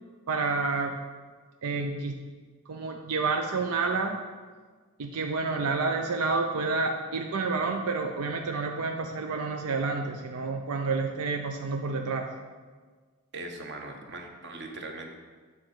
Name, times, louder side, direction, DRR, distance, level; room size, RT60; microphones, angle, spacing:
voice 1, 0.3-1.0 1.6-2.2 2.7-4.2 5.0-12.3, right 4 dB, 85° right, 3 dB, 0.5 m, -29 dB
voice 2, 13.3-15.1, right 2 dB, 50° right, 3 dB, 0.9 m, -40 dB
8.6 x 3.8 x 6.2 m, 1.5 s
head